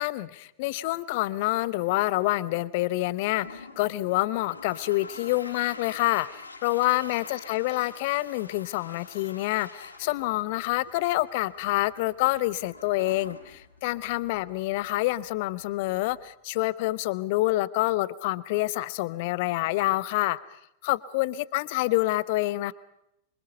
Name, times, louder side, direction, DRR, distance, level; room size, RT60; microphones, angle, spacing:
voice 1, 0.0-22.7, left 18 dB, 50° left, 18 dB, 0.9 m, -27 dB
Toilet flush, 3.1-16.3, left 3 dB, 80° left, 5.3 m, -47 dB
26.5 x 24.5 x 5.5 m, 0.82 s
figure-of-eight pair, 90°, 0 cm